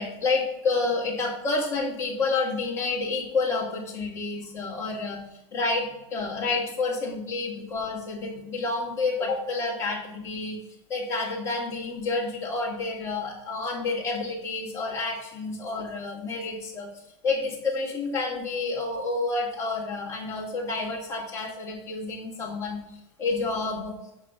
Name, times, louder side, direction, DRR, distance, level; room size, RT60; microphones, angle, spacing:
voice 1, 0.0-5.2 5.5-5.9 6.1-10.6 10.9-22.8 23.2-24.0, left 3 dB, 15° left, -4 dB, 2.3 m, -29 dB
6.6 x 5.2 x 5.5 m, 0.88 s
supercardioid pair, 160°, 17 cm